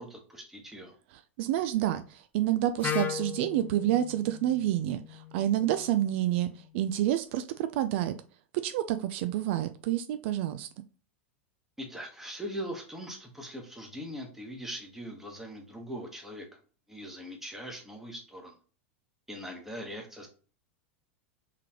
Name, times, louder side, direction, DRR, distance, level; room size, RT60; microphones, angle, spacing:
voice 1, 0.0-0.9 11.8-16.5 16.9-18.5 19.3-20.3, equal, 5° right, 1 dB, 1.1 m, -41 dB
voice 2, 1.1-8.2 8.5-10.7, right 12 dB, 60° right, 11 dB, 0.3 m, -29 dB
Wind instrument woodwind instrument, 2.8-6.7, left 9 dB, 25° left, 0.5 m, -38 dB
3.8 x 3.1 x 2.9 m, 0.39 s
hypercardioid pair, 100°, 7 cm